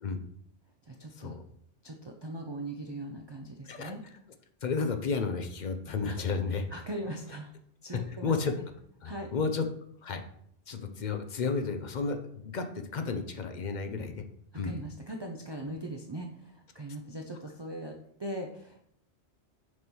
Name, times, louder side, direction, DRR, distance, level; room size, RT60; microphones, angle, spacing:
voice 1, 0.8-1.4 1.8-4.0 6.1-6.2 6.7-7.5 7.8-8.4 9.0-9.3 14.6-18.9, right 1 dB, 35° right, 2 dB, 0.4 m, -40 dB
voice 2, 4.6-6.7 7.9-8.5 9.0-9.7 10.0-10.2 10.7-14.2 14.5-14.7, left 4 dB, 50° left, 6 dB, 0.6 m, -32 dB
6.3 x 3.0 x 5.3 m, 0.68 s
omnidirectional pair, 1.2 m